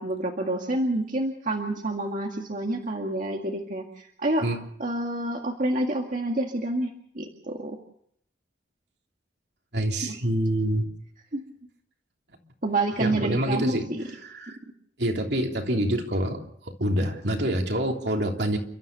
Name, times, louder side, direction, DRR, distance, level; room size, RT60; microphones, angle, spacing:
voice 1, 0.0-4.5 4.8-7.8 10.0-10.2 11.3-11.4 12.6-14.1, right 1 dB, 50° right, 1 dB, 2.0 m, -28 dB
voice 2, 9.7-10.9 13.0-13.9 14.2-14.6 15.0-18.6, right 1 dB, 70° right, 2 dB, 3.3 m, -26 dB
30.0 x 13.5 x 6.8 m, 0.70 s
head